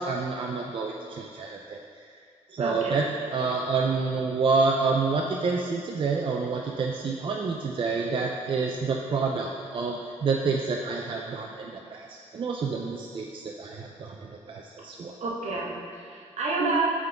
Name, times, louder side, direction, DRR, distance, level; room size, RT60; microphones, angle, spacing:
voice 1, 0.0-1.8 2.5-15.1, right 4 dB, 45° right, 0 dB, 0.4 m, -28 dB
voice 2, 2.6-3.0 15.2-16.9, right 3 dB, 70° right, -3 dB, 1.0 m, -29 dB
7.5 x 3.7 x 3.4 m, 2.2 s
cardioid pair, 105°, 12 cm